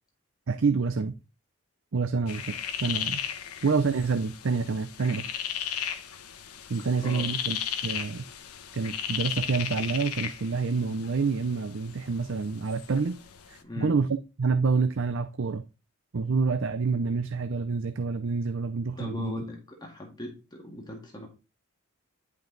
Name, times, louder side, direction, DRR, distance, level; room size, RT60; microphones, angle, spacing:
voice 1, 0.5-1.1 1.9-3.2 3.6-5.3 6.7-7.6 7.8-8.2 8.7-13.2 13.5-15.6 16.1-19.4, right 4 dB, 60° right, 0.5 m, -27 dB
sound 1, 2.3-13.6, left 9 dB, 90° left, 1.1 m, -36 dB
voice 2, 13.6-13.9 19.0-21.3, left 2 dB, 20° left, 1.8 m, -39 dB
10.5 x 5.3 x 3.9 m
head